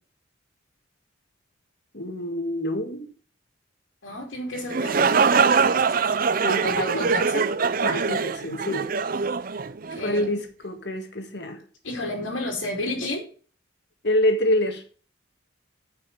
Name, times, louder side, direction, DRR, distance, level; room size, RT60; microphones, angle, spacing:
voice 1, 1.9-3.1 6.4-7.0 7.8-8.9 10.0-11.6 14.0-14.8, left 1 dB, 60° left, 1.8 m, -26 dB
voice 2, 4.0-6.0 6.6-7.5 9.9-10.3 11.8-13.2, left 1 dB, 80° left, 2.6 m, -31 dB
sound 1, 4.6-10.3, right 5 dB, 45° right, 0.5 m, -23 dB
9.7 x 5.8 x 5.3 m
head